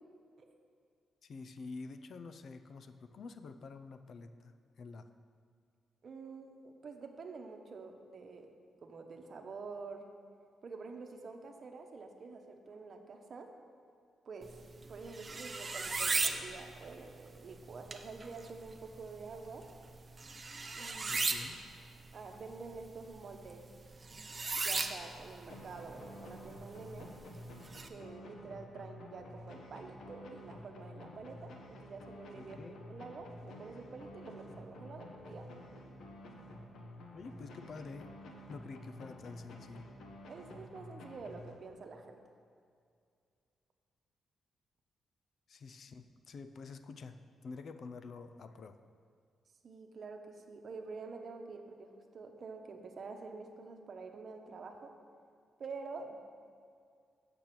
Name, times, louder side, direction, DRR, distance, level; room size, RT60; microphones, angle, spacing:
voice 1, 1.2-5.1 21.1-21.6 32.3-32.9 37.1-38.1 38.5-39.9 45.5-48.8, left 4 dB, 55° left, 10 dB, 0.5 m, -48 dB
voice 2, 6.0-8.5 8.8-10.1 10.6-13.5 14.2-14.5 14.9-19.7 20.7-21.3 22.1-23.7 24.5-27.1 27.9-32.6 32.9-35.5 40.3-42.2 49.6-54.9 55.6-56.2, right 4 dB, 50° right, 4 dB, 1.0 m, -47 dB
sound 1, 14.4-27.9, right 3 dB, 30° right, 0.6 m, -39 dB
sound 2, 25.5-42.0, left 1 dB, 80° left, 1.1 m, -51 dB
8.6 x 6.9 x 6.0 m, 2.2 s
cardioid pair, 105°, 0 cm